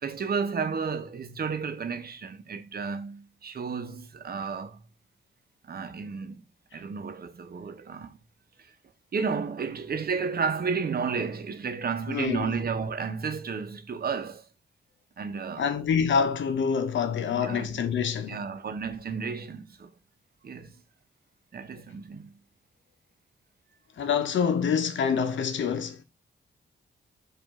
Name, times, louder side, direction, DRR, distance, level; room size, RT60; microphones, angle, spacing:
voice 1, 0.0-4.8 5.7-6.4 6.7-8.2 9.1-14.4 15.2-15.7 17.3-17.8 18.3-19.9 20.4-20.7 21.5-22.4, right 5 dB, 50° right, 0.8 m, -32 dB
voice 2, 12.1-12.6 15.6-18.4 24.0-26.0, left 6 dB, 75° left, 0.7 m, -26 dB
5.0 x 2.6 x 3.6 m
cardioid pair, 70°, 20 cm